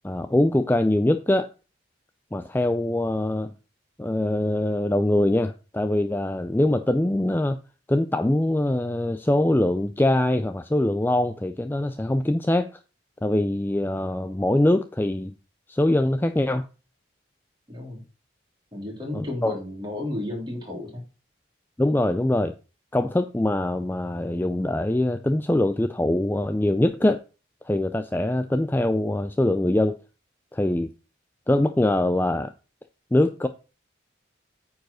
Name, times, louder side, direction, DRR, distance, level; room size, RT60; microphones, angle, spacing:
voice 1, 0.0-1.5 2.3-3.5 4.0-7.6 7.9-12.7 13.2-15.3 15.7-16.6 19.1-19.5 21.8-22.5 22.9-27.2 27.6-30.0 30.5-30.9 31.5-32.5 33.1-33.5, left 1 dB, 10° left, 0.4 m, -23 dB
voice 2, 17.7-18.0 18.7-21.0, left 2 dB, 25° right, 3.4 m, -32 dB
9.1 x 4.8 x 6.3 m
head